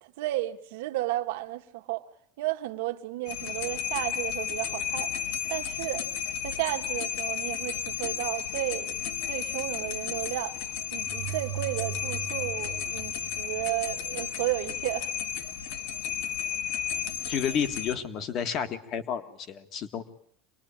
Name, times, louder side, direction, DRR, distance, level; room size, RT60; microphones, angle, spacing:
voice 1, 0.0-2.1 2.4-5.1 5.5-6.1 6.4-9.0 9.3-10.6 10.9-15.1, right 17 dB, 75° right, 1.6 m, -33 dB
sound 1, 3.3-17.9, left 9 dB, 65° left, 1.6 m, -33 dB
sound 2, 11.0-13.9, right 10 dB, 30° right, 1.7 m, -38 dB
voice 2, 17.3-20.1, left 7 dB, 30° left, 1.9 m, -31 dB
26.0 x 20.5 x 8.9 m
cardioid pair, 180°, 0 cm